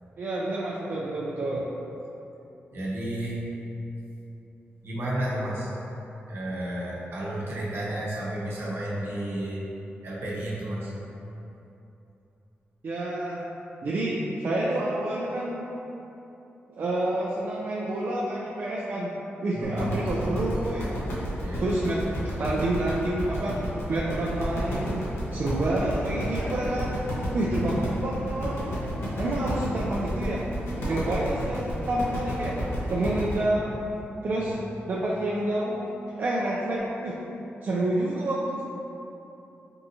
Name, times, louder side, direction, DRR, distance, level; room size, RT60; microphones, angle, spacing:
voice 1, 0.2-1.7 12.8-13.4 13.8-15.6 16.7-19.1 19.4-21.0 21.6-22.0 22.4-23.6 23.9-25.0 25.3-27.0 27.3-28.7 29.2-30.4 30.8-33.9 34.2-34.6 34.9-35.9 36.2-37.1 37.6-38.6, right 1 dB, 55° right, -5 dB, 0.4 m, -28 dB
voice 2, 2.7-3.5 4.8-5.7 6.3-9.7 10.0-10.9 19.5-19.9 21.4-21.7 26.4-26.6 27.5-27.6 34.3-34.5, right 1 dB, 70° right, -6 dB, 0.8 m, -32 dB
sound 1, 19.6-33.3, equal, 80° left, 1.0 m, -32 dB
4.5 x 2.7 x 2.7 m, 3.0 s
cardioid pair, 95°, 4 cm